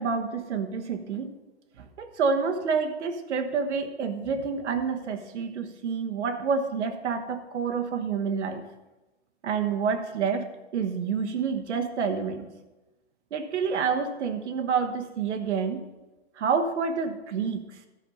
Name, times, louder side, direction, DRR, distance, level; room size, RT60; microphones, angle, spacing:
voice 1, 0.0-1.3 1.8-8.6 9.4-12.5 13.3-15.8 16.4-17.7, right 5 dB, 85° right, 6 dB, 1.3 m, -28 dB
12.0 x 5.2 x 5.6 m, 1.1 s
hypercardioid pair, 140°, 34 cm